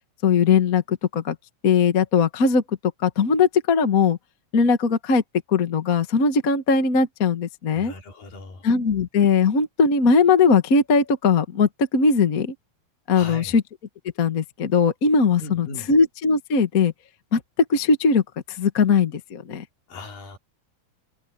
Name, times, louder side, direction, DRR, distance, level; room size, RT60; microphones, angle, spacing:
voice 1, 0.2-1.3 1.6-2.6 3.0-4.2 4.5-5.2 5.5-7.9 8.6-12.5 13.1-13.6 14.2-16.9 17.3-17.4 17.7-18.2 18.6-19.6, left 5 dB, 45° left, 1.2 m, -19 dB
voice 2, 7.7-8.7 13.1-13.6 15.4-15.9 19.9-20.4, left 3 dB, 70° left, 5.9 m, -38 dB
omnidirectional pair, 4.1 m